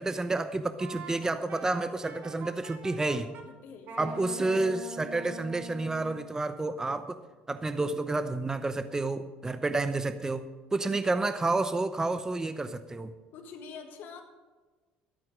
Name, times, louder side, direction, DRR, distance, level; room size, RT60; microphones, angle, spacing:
voice 1, 0.0-3.3 4.0-7.2 7.5-10.4 10.7-13.1, right 2 dB, 15° right, 11 dB, 0.7 m, -30 dB
Wind instrument woodwind instrument, 0.8-3.5 3.9-6.3, right 3 dB, 60° right, 2.0 m, -43 dB
voice 2, 3.5-4.4 13.3-14.2, left 6 dB, 60° left, 3 dB, 1.7 m, -45 dB
13.0 x 8.7 x 6.4 m, 1.3 s
supercardioid pair, 85°, 4 cm